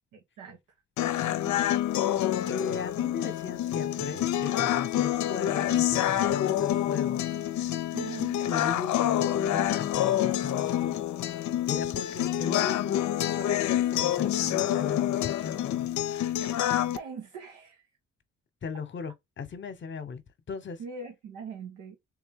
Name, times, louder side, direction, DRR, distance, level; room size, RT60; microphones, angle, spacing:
voice 1, 0.1-0.6 1.0-1.8 7.9-8.3 16.9-17.8 20.8-22.0, right 5 dB, 90° right, 1.1 m, -42 dB
sound 1, 1.0-17.0, left 12 dB, 70° left, 0.6 m, -27 dB
voice 2, 2.5-7.3 8.5-11.0 11.7-15.9 18.6-20.2 20.5-20.8, left 5 dB, 40° left, 1.0 m, -37 dB
3.5 x 2.8 x 3.6 m
cardioid pair, 90°, 30 cm